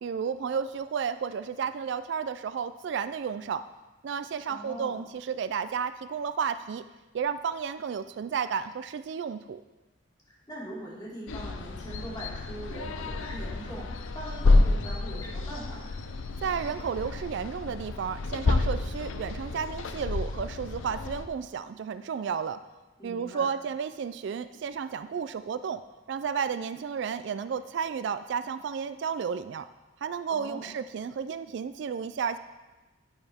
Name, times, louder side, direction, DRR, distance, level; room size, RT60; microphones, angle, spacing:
voice 1, 0.0-3.6 4.0-6.8 7.1-9.6 16.4-22.6 23.0-25.8 26.1-29.7 30.0-32.4, right 6 dB, 60° right, 13 dB, 0.3 m, -32 dB
voice 2, 4.5-5.0 10.3-16.0 23.0-23.5 30.3-30.7, right 1 dB, 20° left, -7 dB, 2.8 m, -42 dB
sound 1, 11.3-21.3, left 2 dB, 80° left, 0.6 m, -29 dB
9.6 x 9.0 x 3.5 m, 1.1 s
head